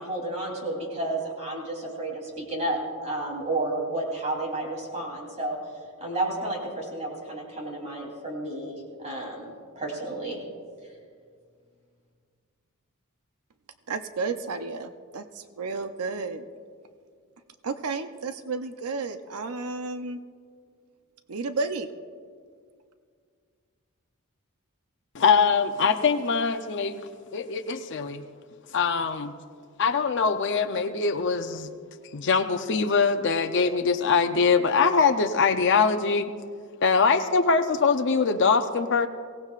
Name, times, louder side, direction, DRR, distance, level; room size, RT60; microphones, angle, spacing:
voice 1, 0.0-5.6 6.0-10.4, right 2 dB, 30° right, -1 dB, 3.2 m, -31 dB
voice 2, 13.9-16.4 17.6-20.2 21.3-21.9, right 4 dB, 80° right, 8 dB, 0.6 m, -32 dB
voice 3, 25.1-28.2 28.7-29.4 29.8-31.7 32.1-36.3 36.8-39.1, left 5 dB, 55° left, 6 dB, 0.6 m, -23 dB
23.0 x 17.0 x 2.4 m, 2.1 s
head